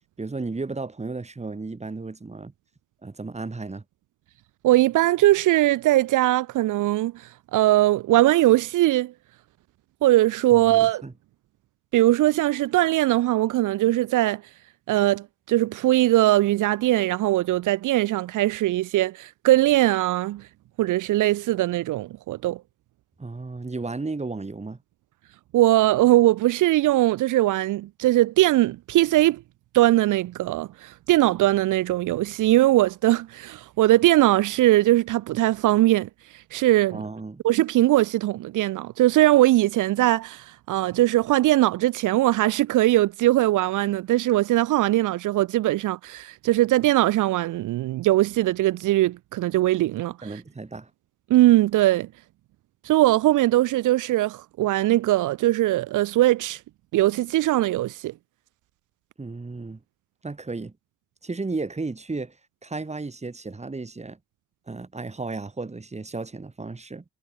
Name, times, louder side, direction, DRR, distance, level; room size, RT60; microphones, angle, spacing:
voice 1, 0.2-2.5 3.0-3.8 10.5-11.1 23.2-24.8 36.9-37.4 50.2-50.9 59.2-59.8 60.2-60.7 61.2-62.4 62.6-64.2 64.7-67.0, right 3 dB, 20° right, 5.2 m, -34 dB
voice 2, 4.6-9.1 10.0-11.0 11.9-14.4 14.9-20.4 20.8-22.6 25.5-29.4 29.7-36.1 36.5-37.0 37.4-50.1 51.3-52.1 52.8-56.6 56.9-58.1, right 16 dB, 85° right, 1.4 m, -20 dB
cardioid pair, 90°, 30 cm